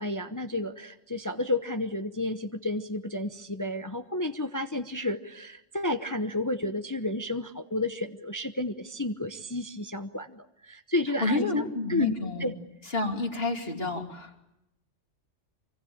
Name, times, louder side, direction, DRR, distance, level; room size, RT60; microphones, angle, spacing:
voice 1, 0.0-12.1 12.4-12.5, left 1 dB, 15° left, 8 dB, 0.9 m, -31 dB
voice 2, 11.2-12.5 12.9-14.4, left 3 dB, 50° left, 3 dB, 3.3 m, -29 dB
26.0 x 24.5 x 8.8 m, 0.86 s
omnidirectional pair, 1.3 m